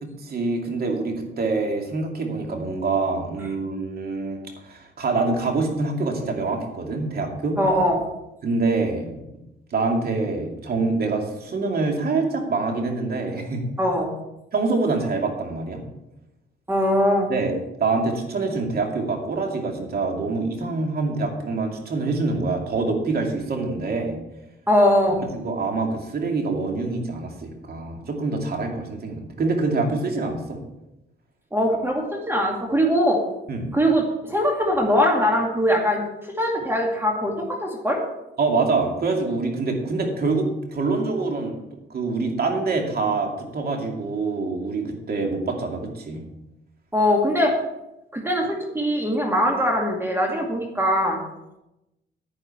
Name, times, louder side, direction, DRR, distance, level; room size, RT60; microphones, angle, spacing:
voice 1, 0.0-7.6 8.4-9.2 9.7-13.6 14.5-15.8 17.3-17.5 17.8-24.2 25.2-30.6 33.5-33.7 38.4-41.5 41.9-46.2, right 3 dB, 50° right, 2 dB, 2.6 m, -25 dB
voice 2, 7.6-8.0 13.8-14.1 16.7-17.3 24.7-25.2 31.5-33.2 33.7-36.0 36.4-38.0 46.9-47.5 48.1-51.2, equal, 10° right, 0 dB, 2.1 m, -21 dB
10.0 x 9.8 x 4.5 m, 0.91 s
cardioid pair, 90°, 20 cm